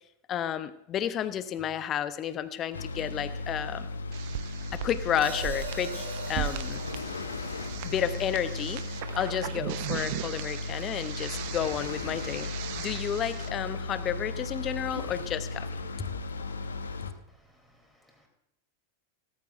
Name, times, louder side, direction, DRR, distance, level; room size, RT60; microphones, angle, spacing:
voice 1, 0.3-3.9 4.7-6.8 7.8-8.8 9.2-12.5 12.8-15.7 16.0-16.1, left 9 dB, 30° left, 14 dB, 0.7 m, -31 dB
sound 1, 2.7-17.1, left 3 dB, 70° left, 0.9 m, -36 dB
sound 2, 4.1-13.5, right 14 dB, 45° right, 0.6 m, -39 dB
Hi-hat, 5.2-9.4, right 2 dB, 80° right, 3.3 m, -43 dB
voice 2, 17.3-18.3, left 1 dB, ahead, 0 dB, 3.0 m, -63 dB
17.5 x 13.5 x 2.6 m, 0.82 s
figure-of-eight pair, 90°, 0 cm